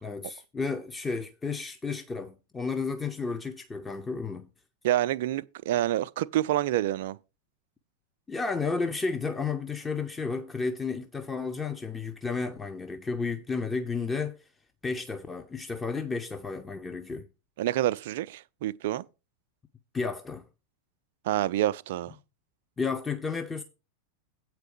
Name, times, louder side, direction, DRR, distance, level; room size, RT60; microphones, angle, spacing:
voice 1, 0.0-4.5 8.3-14.4 14.8-17.3 19.9-20.5 22.8-23.6, left 4 dB, 15° left, 0.7 m, -32 dB
voice 2, 4.8-7.2 17.6-19.0 21.2-22.1, right 13 dB, 55° right, 0.4 m, -27 dB
8.3 x 4.5 x 6.7 m
figure-of-eight pair, 90°, 0 cm